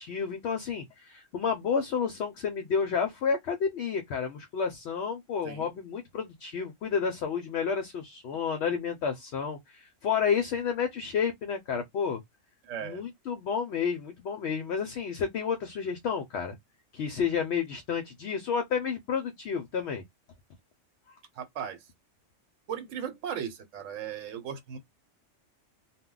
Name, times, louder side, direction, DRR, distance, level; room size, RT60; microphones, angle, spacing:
voice 1, 0.0-12.2 12.8-16.6 16.9-20.0, left 6 dB, 65° left, 0.8 m, -30 dB
voice 2, 12.6-13.0 21.4-21.8 22.7-24.8, right 8 dB, 75° right, 1.0 m, -37 dB
2.2 x 2.1 x 3.7 m
omnidirectional pair, 1.3 m